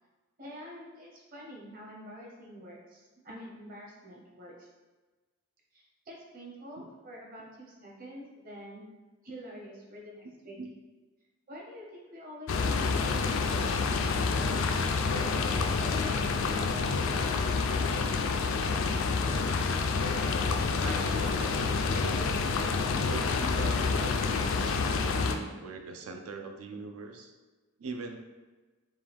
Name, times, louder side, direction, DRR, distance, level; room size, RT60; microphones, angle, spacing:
voice 1, 0.4-4.7 5.7-8.8 9.2-10.6 11.5-17.0, equal, 40° right, -3 dB, 0.9 m, -47 dB
sound 1, 12.5-25.4, left 4 dB, 65° left, 0.3 m, -28 dB
voice 2, 20.8-21.6 22.0-22.4 23.1-27.3 27.8-28.2, right 4 dB, 80° right, 5 dB, 0.5 m, -41 dB
5.3 x 2.3 x 3.4 m, 1.3 s
head